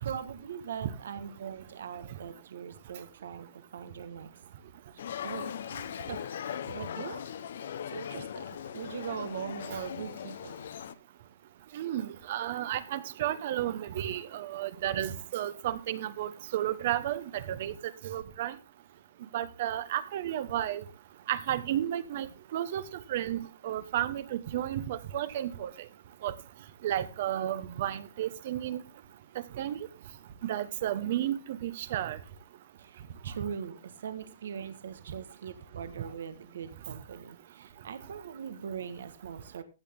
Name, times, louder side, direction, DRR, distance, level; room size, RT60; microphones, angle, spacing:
voice 1, 0.0-4.3 5.2-5.6 6.0-6.2 6.7-7.2 7.9-8.5 8.7-10.5 32.8-39.6, right 7 dB, 70° right, 1.4 m, -41 dB
sound 1, 5.0-10.9, left 9 dB, 60° left, 0.8 m, -39 dB
voice 2, 11.7-17.7 18.0-18.5 19.3-20.8 21.3-22.3 22.5-22.8 23.1-25.7 26.2-26.3 26.8-28.8 29.6-29.8 30.4-32.2, right 12 dB, 45° right, 1.0 m, -32 dB
15.0 x 8.8 x 3.7 m
hypercardioid pair, 165°, 0 cm